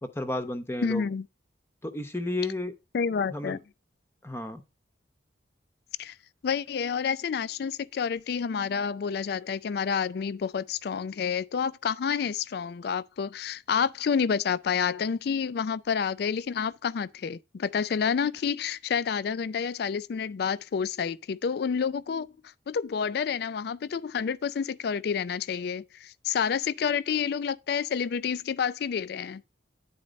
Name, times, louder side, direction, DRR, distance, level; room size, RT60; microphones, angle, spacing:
voice 1, 0.0-1.0 1.8-2.7 3.3-3.6 4.2-4.6, left 2 dB, 15° left, 0.7 m, -32 dB
voice 2, 0.8-1.3 2.9-3.6 6.0-6.2 6.4-22.3 22.7-29.4, left 6 dB, 55° left, 0.3 m, -29 dB
10.0 x 4.2 x 5.1 m
head